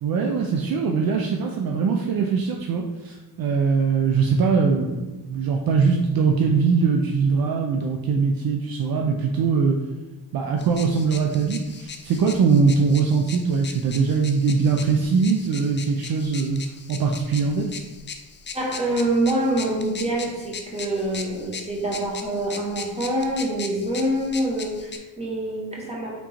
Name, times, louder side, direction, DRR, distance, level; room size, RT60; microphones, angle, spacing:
voice 1, 0.0-9.8 10.3-16.6 16.9-17.8, right 5 dB, 55° right, 2 dB, 0.5 m, -22 dB
sound 1, 10.6-25.0, left 5 dB, 25° left, 0.5 m, -39 dB
voice 2, 18.5-26.2, right 1 dB, 15° right, -3 dB, 1.3 m, -25 dB
3.7 x 3.7 x 3.0 m, 1.1 s
supercardioid pair, 70°, 43 cm